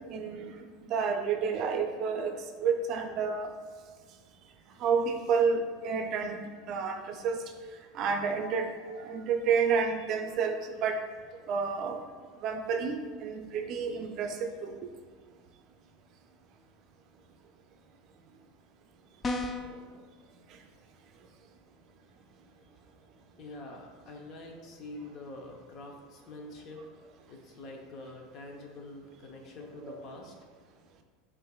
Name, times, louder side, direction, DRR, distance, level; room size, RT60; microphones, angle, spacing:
voice 1, 0.0-2.4 2.6-3.5 4.8-6.4 6.7-7.4 7.9-11.0 11.5-12.0 12.4-14.8 29.8-30.0, right 5 dB, 50° right, 5 dB, 0.4 m, -30 dB
sound 1, 19.2-19.8, left 2 dB, 25° left, 0.3 m, -32 dB
voice 2, 23.4-26.8 27.3-30.3, left 2 dB, 50° left, 1 dB, 0.8 m, -45 dB
7.5 x 2.5 x 2.3 m, 1.5 s
hypercardioid pair, 90°, 0 cm